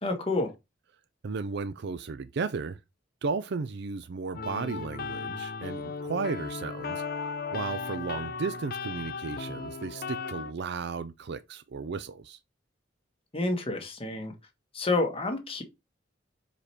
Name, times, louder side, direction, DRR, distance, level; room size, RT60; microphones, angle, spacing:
voice 1, 0.0-0.5 13.3-14.3 14.7-15.6, left 2 dB, 30° left, 1.5 m, -29 dB
voice 2, 1.2-2.8 3.2-7.0 7.5-12.4, right 4 dB, 60° right, 0.4 m, -34 dB
sound 1, 4.3-10.5, left 5 dB, 50° left, 0.6 m, -36 dB
5.0 x 5.0 x 4.3 m
head